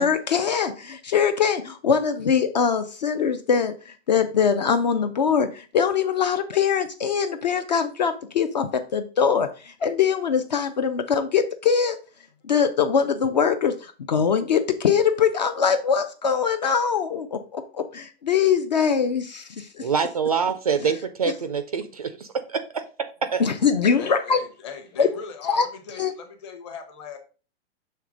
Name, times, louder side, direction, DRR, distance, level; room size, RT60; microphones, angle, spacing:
voice 1, 0.0-12.0 12.5-19.9 23.4-24.4 25.0-25.1 25.5-25.7 26.0-26.1, left 6 dB, 40° left, 8 dB, 0.5 m, -22 dB
voice 2, 19.8-22.8 23.2-23.4, right 6 dB, 35° right, 10 dB, 0.4 m, -25 dB
voice 3, 24.0-27.2, left 6 dB, 25° left, 5 dB, 0.9 m, -39 dB
6.5 x 3.3 x 5.0 m, 0.36 s
hypercardioid pair, 180°, 32 cm